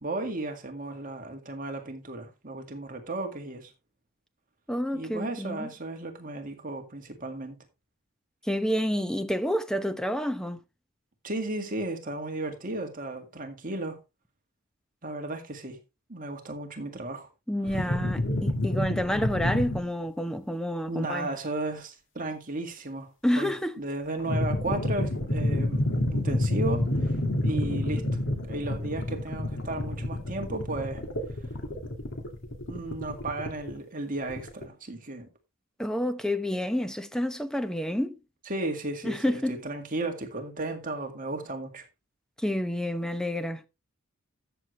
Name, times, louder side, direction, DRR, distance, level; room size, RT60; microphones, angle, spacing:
voice 1, 0.0-3.7 4.9-7.6 11.2-14.0 15.0-15.8 16.1-17.3 17.7-17.9 20.9-23.1 23.4-27.1 27.4-28.0 28.5-31.0 32.7-35.3 38.5-41.9, right 2 dB, 40° right, 2.0 m, -34 dB
voice 2, 4.7-5.7 8.4-10.6 17.5-21.3 23.2-23.8 35.8-38.2 39.0-39.6 42.4-43.6, equal, 5° left, 0.7 m, -29 dB
sound 1, 17.7-19.8 24.2-33.8 34.3-34.7, left 1 dB, 60° left, 2.1 m, -28 dB
13.5 x 8.0 x 3.3 m
head